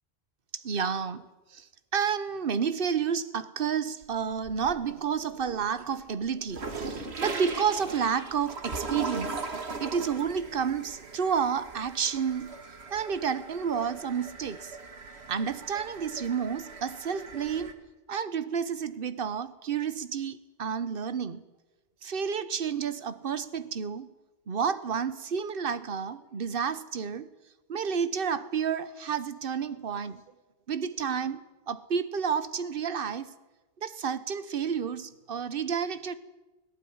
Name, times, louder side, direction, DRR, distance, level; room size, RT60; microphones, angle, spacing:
voice 1, 0.5-1.7 1.9-9.4 9.8-12.6 12.9-14.8 15.3-17.7 18.1-21.4 22.0-24.1 24.5-27.3 27.7-30.2 30.7-33.3 33.8-36.2, right 7 dB, 60° right, 1.2 m, -30 dB
sound 1, 4.0-5.0 5.4-17.7, right 3 dB, 85° right, 2.0 m, -39 dB
18.0 x 17.0 x 9.5 m
omnidirectional pair, 1.1 m